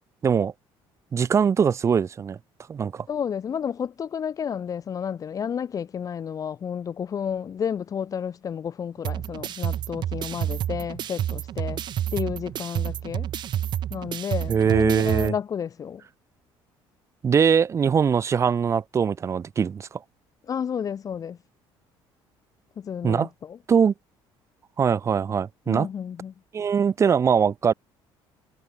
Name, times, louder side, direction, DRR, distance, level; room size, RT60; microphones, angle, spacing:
voice 1, 1.1-2.4 2.7-3.1 14.5-15.3 17.2-20.0 23.0-23.3 23.7-23.9 24.8-25.9 26.5-27.7, right 6 dB, 30° right, 1.0 m, -22 dB
voice 2, 3.1-11.8 12.1-13.3 13.9-16.0 20.5-21.4 22.8-23.6 25.7-26.3, left 8 dB, 40° left, 2.7 m, -31 dB
sound 1, 9.0-15.3, right 11 dB, 55° right, 3.4 m, -30 dB
cardioid pair, 125°, 9 cm